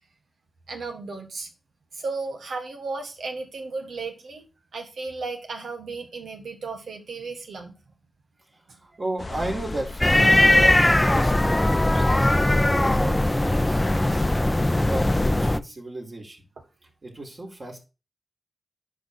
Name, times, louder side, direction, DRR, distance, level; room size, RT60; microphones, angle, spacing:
voice 1, 0.7-1.5 1.9-4.5 4.7-7.7, right 3 dB, 85° right, 1.7 m, -34 dB
voice 2, 8.8-16.4 17.0-17.8, right 2 dB, 50° right, 4.5 m, -35 dB
sound 1, 9.2-15.5, left 3 dB, 50° left, 0.8 m, -34 dB
sound 2, 10.0-15.6, left 1 dB, 20° left, 0.6 m, -20 dB
11.0 x 5.0 x 4.2 m
cardioid pair, 40°, 0 cm